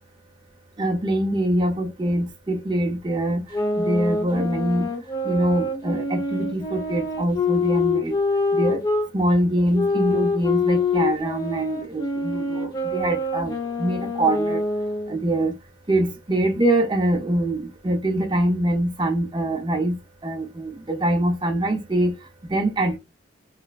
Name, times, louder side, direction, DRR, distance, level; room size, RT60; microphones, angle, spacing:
voice 1, 0.8-3.4 3.8-4.9 5.2-8.1 8.5-8.8 9.1-14.6 15.1-15.5 15.9-20.0 20.2-22.2 22.5-23.0, right 1 dB, 25° right, 0.6 m, -24 dB
sound 1, 3.5-9.1 9.7-15.2, left 3 dB, 20° left, 0.6 m, -25 dB
3.1 x 2.1 x 2.3 m
head